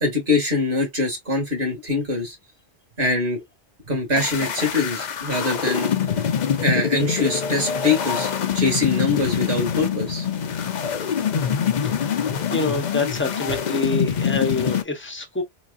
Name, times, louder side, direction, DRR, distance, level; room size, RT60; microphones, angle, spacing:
voice 1, 0.0-2.4 3.0-3.4 3.8-5.9 6.6-10.3, left 3 dB, 50° right, 2.2 m, -23 dB
sound 1, 4.2-14.8, left 7 dB, 50° left, 0.6 m, -25 dB
voice 2, 12.5-15.4, left 3 dB, 15° left, 0.7 m, -26 dB
4.0 x 3.3 x 2.4 m
omnidirectional pair, 1.1 m